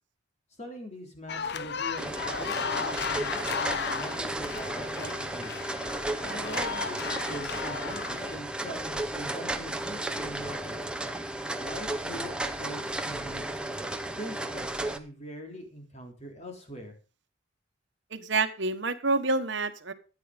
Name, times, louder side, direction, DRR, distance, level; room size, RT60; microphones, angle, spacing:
voice 1, 0.6-5.6 6.2-10.9 11.6-13.5 14.2-16.9, equal, 35° left, 3 dB, 3.4 m, -43 dB
sound 1, 1.3-8.4, left 6 dB, 55° left, 0.7 m, -35 dB
sound 2, 2.0-15.0, right 1 dB, 5° right, 0.9 m, -34 dB
voice 2, 18.1-19.9, right 3 dB, 60° right, 9 dB, 1.4 m, -28 dB
13.0 x 9.5 x 5.2 m, 0.35 s
head